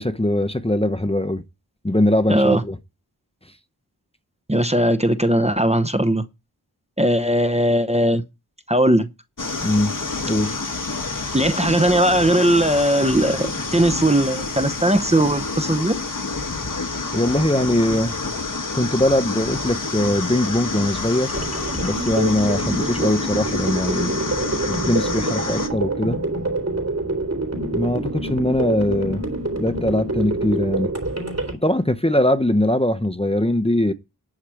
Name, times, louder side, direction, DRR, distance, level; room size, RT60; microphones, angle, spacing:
voice 1, 0.0-1.4 1.8-2.8 9.6-9.9 10.2-10.5 17.1-18.2 18.7-21.4 21.8-24.2 24.5-26.2 27.7-29.2 29.6-30.9 31.6-33.9, left 1 dB, 15° left, 0.8 m, -21 dB
voice 2, 2.3-2.6 4.5-6.3 7.0-8.2 8.7-9.1 11.3-16.0, right 1 dB, 15° right, 0.8 m, -19 dB
sound 1, 9.4-25.7, left 3 dB, 50° left, 1.3 m, -28 dB
sound 2, 21.3-31.5, right 2 dB, 40° right, 3.6 m, -26 dB
11.5 x 4.8 x 7.5 m
wide cardioid pair, 45°, 40 cm